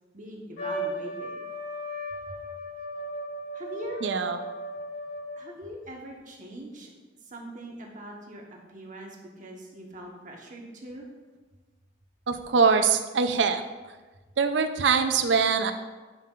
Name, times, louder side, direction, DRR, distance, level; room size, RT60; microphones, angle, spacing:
voice 1, 0.1-1.4 2.3-2.4 3.5-4.0 5.4-6.9 7.2-11.1, equal, 45° right, 0 dB, 1.2 m, -42 dB
Trumpet, 0.6-5.6, equal, 60° left, 2.4 m, -36 dB
voice 2, 4.0-4.4 12.3-13.6 14.4-15.7, right 5 dB, 70° right, 8 dB, 0.5 m, -23 dB
11.5 x 5.6 x 2.5 m, 1.3 s
head